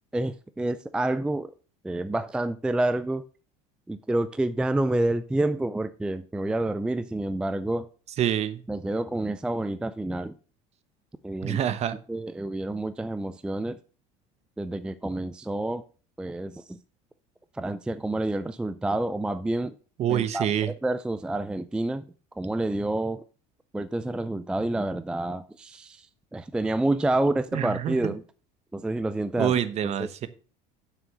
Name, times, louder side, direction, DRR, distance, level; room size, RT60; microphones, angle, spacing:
voice 1, 0.1-1.5 1.8-3.2 3.9-7.9 8.7-10.3 11.2-11.6 12.1-13.8 14.6-15.8 16.2-16.8 17.6-19.7 20.1-22.0 22.4-23.2 23.7-26.1 26.3-28.2 28.7-29.5 30.0-30.1, right 2 dB, 5° right, 0.3 m, -28 dB
voice 2, 8.2-8.6 11.4-12.0 20.0-20.7 27.5-28.1 29.4-30.3, right 10 dB, 40° right, 0.9 m, -26 dB
7.5 x 6.1 x 6.7 m
cardioid pair, 130°, 17 cm